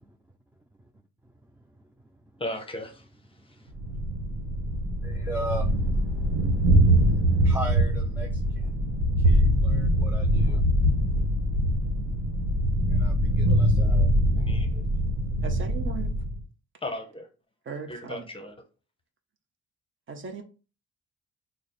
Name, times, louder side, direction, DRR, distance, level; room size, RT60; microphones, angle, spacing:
voice 1, 2.4-3.0 14.4-14.9 16.8-17.3 17.9-18.5, left 1 dB, 20° left, 0.7 m, -36 dB
Thunder, 3.8-16.4, equal, 70° right, 1.1 m, -23 dB
voice 2, 5.0-8.8 9.1-10.6 10.9-11.3 11.6-11.7 12.2-12.4 12.9-14.4, right 1 dB, 5° right, 0.3 m, -39 dB
voice 3, 15.4-16.1 17.7-18.3 20.1-20.4, right 5 dB, 40° right, 0.7 m, -37 dB
3.3 x 2.0 x 4.0 m
cardioid pair, 90°, 30 cm